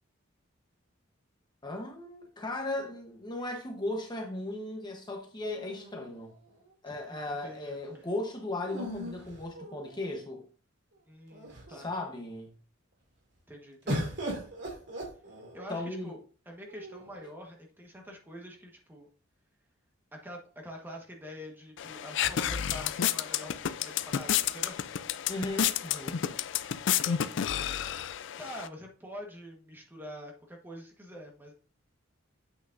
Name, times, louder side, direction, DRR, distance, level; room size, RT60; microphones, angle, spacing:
voice 1, 1.6-6.3 6.8-10.4 11.7-12.5 15.7-16.2 25.3-26.2, left 2 dB, 20° left, 1.0 m, -36 dB
sound 1, 5.5-6.7 8.6-10.2 10.9-11.0 11.3-11.9 13.9-15.7 16.7-17.4, equal, 60° right, 2.6 m, -38 dB
voice 2, 6.8-7.8 11.1-11.9 13.5-14.1 15.5-16.2 16.5-19.1 20.1-24.8 26.9-27.6 28.4-31.5, equal, 10° right, 1.3 m, -46 dB
sound 2, 21.8-28.7, left 9 dB, 60° left, 0.4 m, -31 dB
8.2 x 6.1 x 2.6 m
head